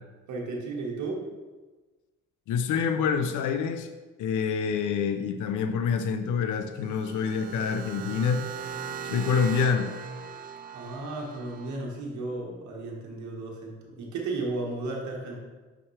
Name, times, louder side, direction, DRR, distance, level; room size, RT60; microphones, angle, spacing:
voice 1, 0.3-1.2 10.7-15.4, right 2 dB, 70° right, -2 dB, 1.4 m, -34 dB
voice 2, 2.5-3.9 4.2-8.5 9.0-9.9, left 6 dB, 80° left, 8 dB, 0.6 m, -27 dB
sound 1, 6.7-11.8, right 6 dB, 30° right, 0.4 m, -39 dB
5.7 x 5.2 x 3.2 m, 1.2 s
cardioid pair, 90°, 30 cm